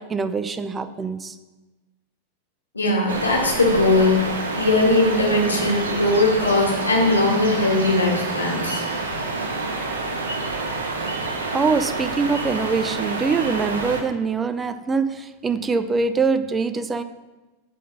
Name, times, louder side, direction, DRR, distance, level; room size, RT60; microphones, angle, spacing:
voice 1, 0.0-1.4 11.5-17.0, right 4 dB, 20° right, 12 dB, 0.5 m, -23 dB
voice 2, 2.7-8.8, left 2 dB, 85° left, -1 dB, 2.0 m, -20 dB
sound 1, 3.1-14.0, right 3 dB, 75° right, 1.1 m, -28 dB
8.3 x 3.9 x 7.0 m, 1.2 s
figure-of-eight pair, 95°, 0 cm